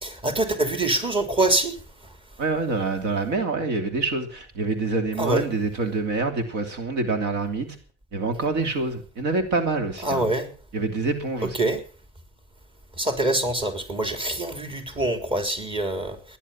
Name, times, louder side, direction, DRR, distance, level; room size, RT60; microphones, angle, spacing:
voice 1, 0.0-2.2 5.2-5.5 10.0-10.5 11.4-11.8 13.0-16.4, right 2 dB, 30° right, 3.7 m, -25 dB
voice 2, 2.4-7.8 8.1-10.3 10.7-11.5, right 3 dB, 85° right, 3.0 m, -26 dB
16.0 x 11.0 x 7.3 m
cardioid pair, 110°, 17 cm